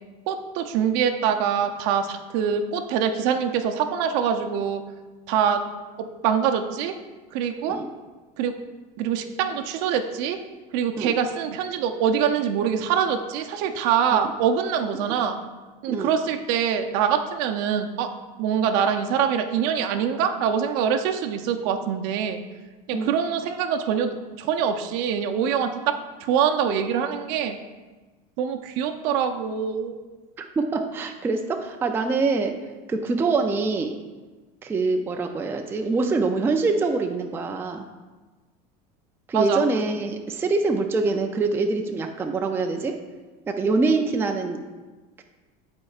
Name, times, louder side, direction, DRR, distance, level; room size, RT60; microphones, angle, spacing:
voice 1, 0.3-4.8 5.3-5.6 6.0-6.9 7.3-7.8 8.4-8.5 9.0-10.4 10.7-15.4 15.8-18.1 18.4-22.4 22.9-25.9 26.2-27.6 28.4-29.9 39.3-39.6, right 7 dB, 65° right, 6 dB, 0.6 m, -24 dB
voice 2, 30.4-32.6 32.9-33.9 34.6-37.9 39.3-42.9 43.5-44.6 45.2-45.3, right 3 dB, 10° right, 4 dB, 0.3 m, -24 dB
10.5 x 4.4 x 2.4 m, 1.3 s
supercardioid pair, 140°, 20 cm